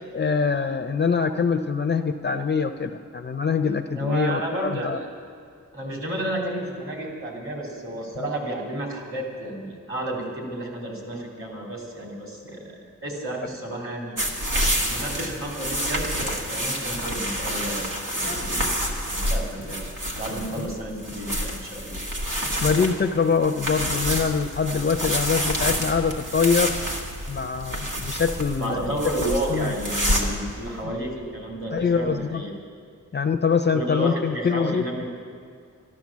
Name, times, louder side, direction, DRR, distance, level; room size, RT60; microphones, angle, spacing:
voice 1, 0.1-5.0 20.6-20.7 22.6-26.7 27.3-28.9 29.5-29.7 30.8-30.9 31.7-32.4 33.1-34.8, left 5 dB, 35° left, 8 dB, 0.5 m, -24 dB
voice 2, 3.9-5.0 5.7-14.2 14.9-18.8 19.1-19.8 20.1-22.0 28.6-32.5 33.7-35.1, right 1 dB, 40° right, -1 dB, 3.1 m, -31 dB
sound 1, 14.2-30.5, equal, 80° right, 1.8 m, -28 dB
sound 2, 23.3-32.4, equal, 60° right, 4.5 m, -41 dB
13.5 x 12.0 x 7.2 m, 2.3 s
wide cardioid pair, 140°, 31 cm